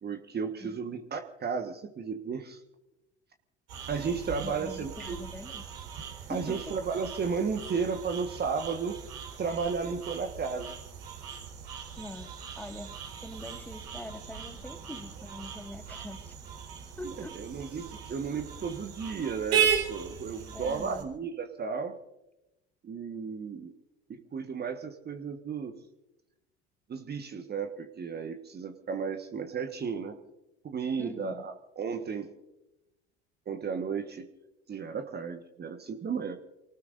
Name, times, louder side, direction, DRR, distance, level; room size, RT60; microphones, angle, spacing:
voice 1, 0.0-2.6 3.9-5.2 6.3-9.0 9.4-10.7 17.0-22.0 22.8-23.7 24.1-25.8 26.9-30.2 30.6-32.3 33.5-34.3 34.7-36.4, right 5 dB, 30° right, 6 dB, 1.5 m, -34 dB
sound 1, 3.7-21.0, right 8 dB, 60° right, 4.3 m, -37 dB
voice 2, 4.4-5.6 6.3-6.7 12.0-13.0 13.2-16.3 17.0-17.4 20.5-21.1 31.0-31.5, left 1 dB, 5° left, 7 dB, 1.9 m, -43 dB
29.0 x 18.5 x 2.6 m, 0.95 s
figure-of-eight pair, 60°, 33 cm